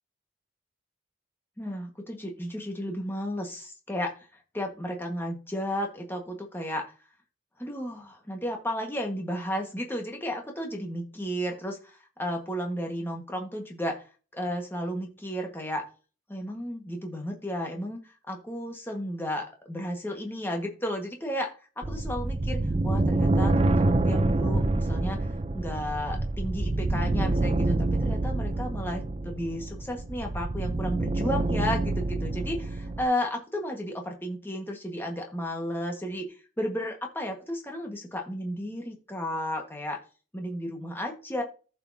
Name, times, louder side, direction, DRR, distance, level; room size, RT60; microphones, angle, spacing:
voice 1, 1.6-4.3 4.5-6.9 7.6-14.0 14.3-15.9 16.3-18.0 18.3-21.5 21.8-25.2 25.5-36.3 36.6-40.0 40.3-41.4, equal, 10° left, 2 dB, 1.5 m, -33 dB
sound 1, 21.8-33.1, right 2 dB, 30° right, 0.5 m, -27 dB
15.0 x 5.5 x 2.7 m, 0.35 s
head